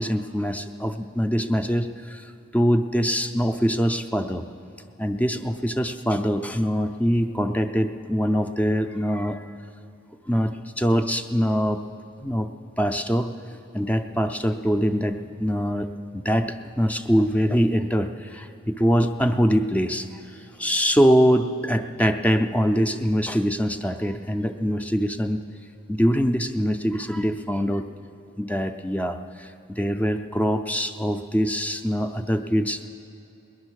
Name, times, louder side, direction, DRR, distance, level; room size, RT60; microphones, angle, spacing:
voice 1, 0.0-2.3 2.5-4.4 5.0-9.4 10.3-11.8 12.2-12.5 12.8-13.3 13.7-25.4 25.9-27.9 28.4-32.9, equal, 5° left, 7 dB, 0.5 m, -23 dB
19.5 x 10.5 x 6.4 m, 2.8 s
head